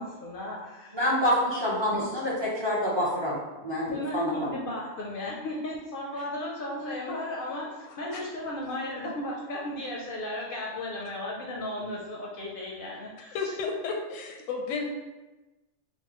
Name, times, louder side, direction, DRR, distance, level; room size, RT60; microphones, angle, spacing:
voice 1, 0.0-1.0 1.9-2.1 3.9-13.5, left 1 dB, 60° left, -3 dB, 0.6 m, -35 dB
voice 2, 0.9-4.3, equal, 25° right, -6 dB, 0.6 m, -27 dB
voice 3, 13.3-14.9, left 4 dB, 80° left, 3 dB, 0.9 m, -32 dB
4.8 x 2.1 x 2.9 m, 1.1 s
omnidirectional pair, 1.3 m